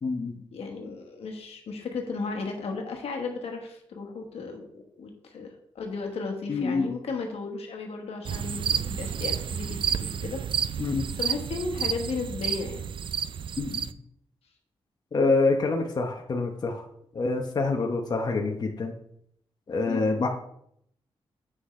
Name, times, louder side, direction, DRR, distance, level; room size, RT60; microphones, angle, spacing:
voice 1, 0.0-0.4 6.5-6.9 10.8-11.1 13.6-13.9 15.1-16.8 17.1-18.9 19.7-20.3, left 3 dB, 45° left, 2 dB, 0.9 m, -26 dB
voice 2, 0.5-10.4 11.2-12.9 19.9-20.1, left 4 dB, 85° left, 3 dB, 1.3 m, -35 dB
sound 1, 8.2-13.9, right 8 dB, 55° right, 0.3 m, -30 dB
7.8 x 6.1 x 3.2 m, 0.70 s
wide cardioid pair, 110°, 10 cm